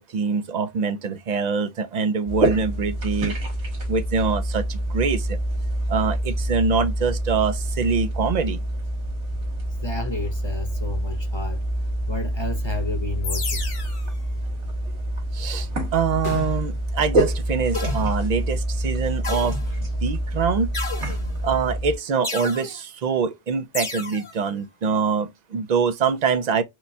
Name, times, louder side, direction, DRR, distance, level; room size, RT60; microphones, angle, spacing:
voice 1, 0.0-3.3 3.9-5.4 5.9-8.6 15.3-19.6 20.0-20.7 21.4-26.6, right 5 dB, 55° right, 0.4 m, -24 dB
sound 1, 2.3-21.9, right 1 dB, 75° right, 1.8 m, -26 dB
voice 2, 9.7-11.7 12.1-13.7, left 3 dB, 40° left, 0.4 m, -32 dB
sound 2, 13.2-14.1 16.2-16.8 17.7-18.3 19.2-20.0 20.7-21.5 22.2-22.8 23.7-24.3, left 4 dB, 90° left, 1.6 m, -32 dB
4.7 x 2.2 x 2.6 m
omnidirectional pair, 1.2 m